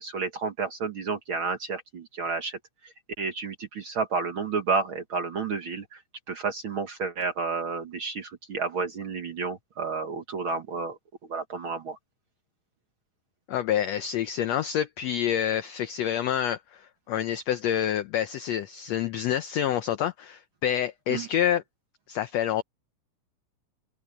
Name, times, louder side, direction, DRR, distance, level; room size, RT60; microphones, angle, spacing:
voice 1, 0.0-2.6 2.8-6.0 6.3-11.0 11.3-12.0 21.1-21.3, right 4 dB, 55° right, 1.6 m, -31 dB
voice 2, 13.5-21.6 22.1-22.6, left 10 dB, 85° left, 1.4 m, -27 dB
open air
omnidirectional pair, 3.9 m